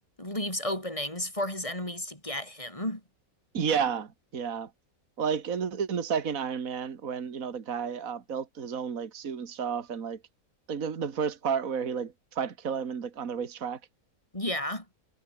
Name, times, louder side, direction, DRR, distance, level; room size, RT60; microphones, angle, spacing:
voice 1, 0.0-3.0 14.3-14.9, left 1 dB, 20° left, 5.4 m, -33 dB
voice 2, 3.5-4.7 5.2-10.2 10.7-13.8, right 6 dB, 65° right, 2.1 m, -31 dB
omnidirectional pair, 1.6 m